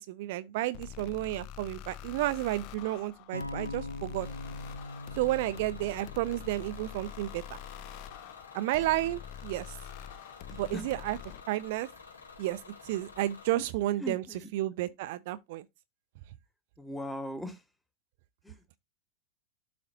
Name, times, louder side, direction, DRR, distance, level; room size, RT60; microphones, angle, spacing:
voice 1, 0.0-4.3 5.2-7.6 8.5-9.8 10.5-11.2 11.5-11.9 12.4-14.2 14.5-15.6, right 16 dB, 50° right, 0.5 m, -32 dB
sound 1, 0.7-11.4, left 9 dB, 40° left, 0.6 m, -45 dB
sound 2, 3.3-7.5, left 2 dB, 90° left, 0.7 m, -42 dB
Bus / Engine, 4.2-13.5, left 5 dB, 70° left, 2.4 m, -51 dB
voice 2, 10.5-10.8 13.5-13.6 14.0-14.5 16.8-17.6 18.4-18.8, left 1 dB, 5° left, 1.4 m, -40 dB
12.0 x 4.1 x 2.6 m
figure-of-eight pair, 90°, 0 cm